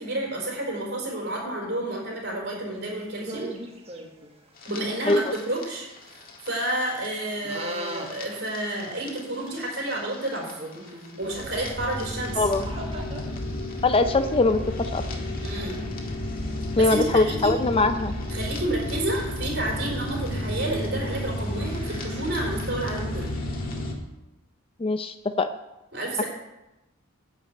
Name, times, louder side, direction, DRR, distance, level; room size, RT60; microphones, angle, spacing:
voice 1, 0.0-3.5 4.6-10.6 11.2-12.5 15.4-15.8 16.8-17.5 18.3-23.3 25.9-26.3, right 1 dB, 50° right, -2 dB, 4.4 m, -30 dB
sound 1, 2.7-4.5 5.0-5.1 5.4-5.6 6.0-6.1 6.4-6.7 7.3-13.2 13.7-16.0 16.5-16.6 17.1-18.5 18.8-22.3, right 1 dB, 30° right, 1.5 m, -42 dB
sound 2, 4.6-23.9, left 1 dB, 40° left, 1.8 m, -33 dB
voice 2, 13.8-15.0 16.8-18.1 24.8-25.5, left 2 dB, 25° left, 10 dB, 0.4 m, -22 dB
12.0 x 5.9 x 8.5 m, 0.97 s
head